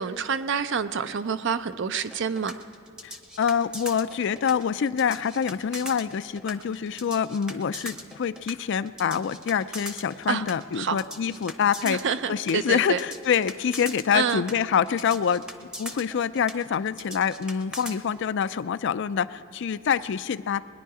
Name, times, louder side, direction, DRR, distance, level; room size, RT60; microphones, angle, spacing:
voice 1, 0.0-2.5 10.3-10.4 10.7-11.0 11.8-13.0 14.1-14.4, right 6 dB, 60° right, 12 dB, 0.5 m, -27 dB
sound 1, 2.0-18.0, equal, 5° right, 0.7 m, -40 dB
voice 2, 3.0-12.0 12.3-15.4 15.8-20.7, left 7 dB, 60° left, 15 dB, 0.4 m, -26 dB
20.5 x 10.0 x 4.9 m, 2.5 s
head